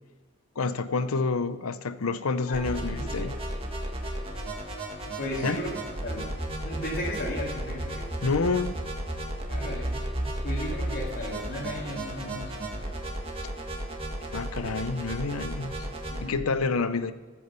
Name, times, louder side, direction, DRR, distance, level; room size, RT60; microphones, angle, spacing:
voice 1, 0.6-3.3 5.4-5.6 8.2-8.7 14.3-15.9 16.2-17.1, left 4 dB, 85° left, 13 dB, 0.7 m, -28 dB
voice 2, 2.5-3.4 5.2-6.3 6.6-8.1 9.5-10.0 10.4-12.6 16.1-16.8, equal, 55° left, -5 dB, 2.4 m, -36 dB
sound 1, 2.5-16.2, right 1 dB, 25° right, 1.8 m, -34 dB
14.0 x 8.4 x 6.9 m, 1.3 s
head